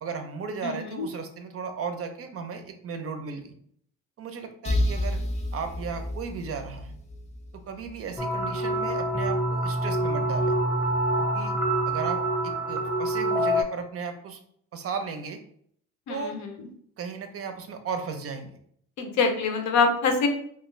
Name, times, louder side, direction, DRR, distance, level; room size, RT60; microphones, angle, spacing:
voice 1, 0.0-3.5 4.2-5.2 5.5-7.0 7.5-10.6 11.3-11.6 11.9-14.4 14.7-15.4 16.1-16.4 17.0-18.5, right 5 dB, 50° right, 7 dB, 0.5 m, -35 dB
voice 2, 0.6-1.1 16.1-16.7 19.0-20.3, left 4 dB, 70° left, 5 dB, 0.6 m, -25 dB
sound 1, 4.6-8.3, left 1 dB, 25° left, 0.4 m, -30 dB
sound 2, 8.2-13.6, right 1 dB, 5° right, 0.7 m, -26 dB
2.4 x 2.3 x 3.0 m, 0.66 s
cardioid pair, 90°, 30 cm